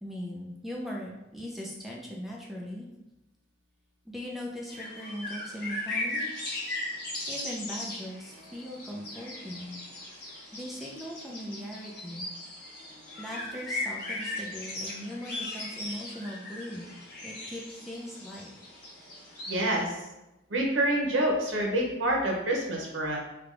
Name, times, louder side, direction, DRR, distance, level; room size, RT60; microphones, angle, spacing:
voice 1, 0.0-2.9 4.1-6.3 7.3-9.8 10.5-12.3 13.2-16.9 17.2-18.5, equal, ahead, -3 dB, 0.4 m, -39 dB
sound 1, 4.7-19.8, left 2 dB, 55° left, 1.0 m, -38 dB
voice 2, 19.5-20.0 20.5-23.2, right 1 dB, 90° right, -1 dB, 0.9 m, -27 dB
3.4 x 2.3 x 3.8 m, 0.96 s
head